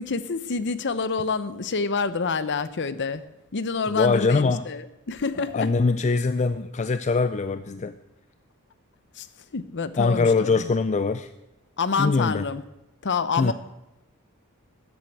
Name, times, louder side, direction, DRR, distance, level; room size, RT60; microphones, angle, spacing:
voice 1, 0.0-3.2 3.5-5.7 9.2-9.3 9.5-10.7 11.8-12.6 13.0-13.5, left 4 dB, 55° left, 14 dB, 0.8 m, -27 dB
voice 2, 3.9-4.6 5.5-7.9 10.0-11.3 12.0-12.4 13.4-13.5, left 4 dB, 30° left, 11 dB, 0.4 m, -22 dB
13.5 x 8.1 x 7.9 m, 0.91 s
head